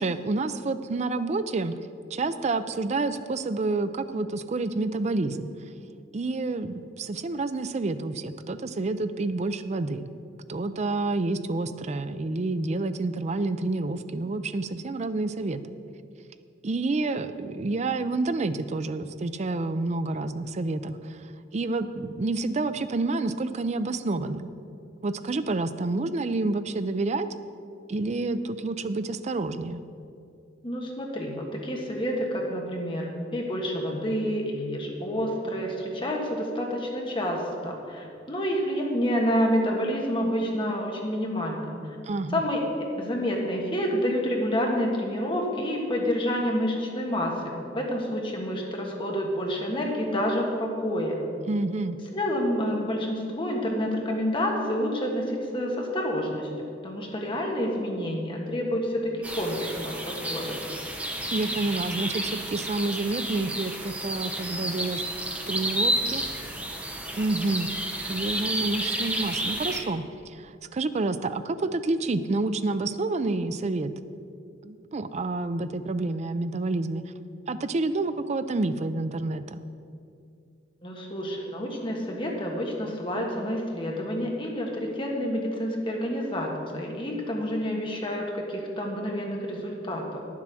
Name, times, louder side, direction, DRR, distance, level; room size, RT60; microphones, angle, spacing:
voice 1, 0.0-1.8 2.1-5.5 6.1-10.1 10.5-15.6 16.6-21.3 21.5-24.5 25.0-27.3 27.9-29.8 42.0-42.4 51.5-52.0 61.3-65.0 65.5-66.2 67.1-67.7 68.1-73.9 74.6-77.1 77.5-79.6, right 2 dB, 40° right, 11 dB, 0.4 m, -29 dB
voice 2, 30.6-42.0 42.3-51.2 52.1-56.5 56.8-60.6 80.8-90.2, equal, 25° left, 0 dB, 1.5 m, -28 dB
sound 1, 59.2-69.8, right 1 dB, 10° right, 0.9 m, -31 dB
9.7 x 7.5 x 6.2 m, 2.5 s
head